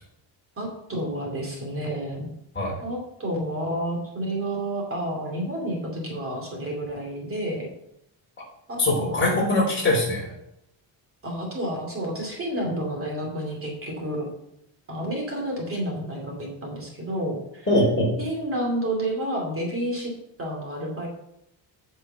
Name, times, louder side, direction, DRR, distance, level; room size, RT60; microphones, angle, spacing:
voice 1, 0.6-2.3 2.8-7.7 8.7-9.3 11.2-14.3 14.9-17.7 18.2-20.1 20.4-21.1, right 1 dB, 30° right, 0 dB, 2.5 m, -30 dB
voice 2, 8.8-10.3 17.7-18.1, left 1 dB, 25° left, -2 dB, 3.3 m, -22 dB
9.0 x 5.6 x 7.8 m, 0.78 s
cardioid pair, 180°, 47 cm